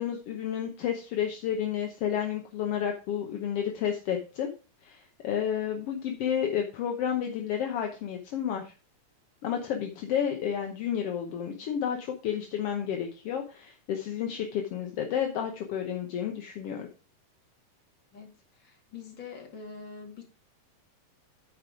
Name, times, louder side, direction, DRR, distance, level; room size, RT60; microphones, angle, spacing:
voice 1, 0.0-4.5 4.8-8.7 9.4-16.9, left 9 dB, 65° left, 3 dB, 1.6 m, -31 dB
voice 2, 18.1-20.2, left 5 dB, 40° left, 2 dB, 2.5 m, -45 dB
9.4 x 5.4 x 4.8 m, 0.35 s
omnidirectional pair, 3.6 m